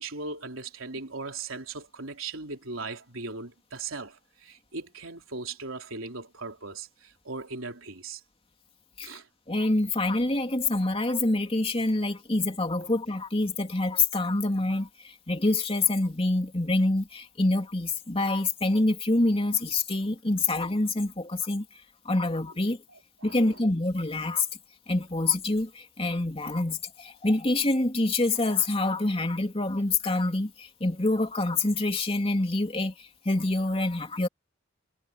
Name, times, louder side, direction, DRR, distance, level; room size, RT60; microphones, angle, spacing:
voice 1, 0.0-8.2 9.0-9.3 14.7-14.8 23.2-23.6, right 3 dB, 85° right, 3.5 m, -38 dB
voice 2, 9.5-21.7 22.0-22.8 23.2-24.5 24.9-34.3, left 2 dB, 30° left, 2.7 m, -26 dB
head